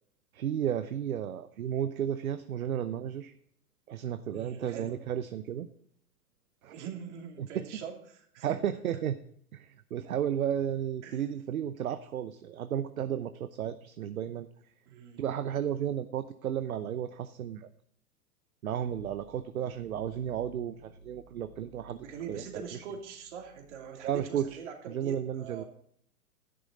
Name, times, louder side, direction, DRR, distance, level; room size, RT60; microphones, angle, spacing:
voice 1, 0.3-3.3 3.9-5.7 6.6-6.7 7.4-7.7 8.4-9.2 9.5-14.5 15.2-17.7 18.6-22.4 24.0-24.6 24.9-25.6, right 9 dB, 65° right, 11 dB, 0.8 m, -33 dB
voice 2, 4.3-5.0 6.7-8.5 11.0-11.2 14.9-15.2 21.9-25.7, right 7 dB, 50° right, 2 dB, 3.0 m, -43 dB
sound 1, 18.7-24.5, right 3 dB, 75° left, 2.0 m, -57 dB
12.5 x 10.5 x 3.9 m, 0.66 s
figure-of-eight pair, 115°, 46 cm